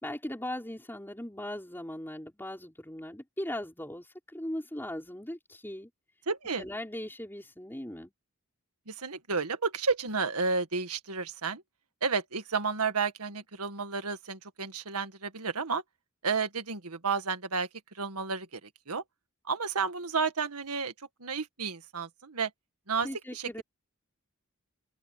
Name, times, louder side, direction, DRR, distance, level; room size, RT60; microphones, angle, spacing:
voice 1, 0.0-5.9 6.6-8.1 23.0-23.6, left 1 dB, 10° left, 4.9 m, -39 dB
voice 2, 6.3-6.6 8.9-11.6 12.0-15.8 16.2-17.7 18.0-18.6 18.9-19.0 19.5-20.9 21.2-22.5 22.9-23.6, right 5 dB, 90° right, 1.8 m, -31 dB
open air
head